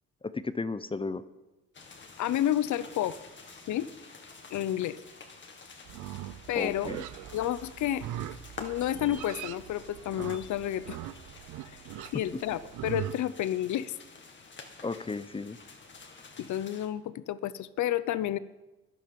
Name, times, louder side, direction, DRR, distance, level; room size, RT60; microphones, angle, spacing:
voice 1, 0.2-1.2 6.5-7.0 12.3-12.4 14.8-15.6, left 3 dB, 20° left, 14 dB, 0.6 m, -34 dB
sound 1, 1.7-16.9, left 4 dB, 40° left, 2.0 m, -50 dB
voice 2, 2.2-3.2 3.7-3.9 4.5-5.0 6.5-6.9 7.3-8.1 8.6-11.0 12.1-13.9 16.4-18.4, left 12 dB, 70° left, 17 dB, 0.7 m, -30 dB
Livestock farm animals working animals, 5.8-13.2, right 13 dB, 90° right, 0.6 m, -41 dB
11.5 x 10.5 x 6.9 m, 1.1 s
cardioid pair, 90°, 30 cm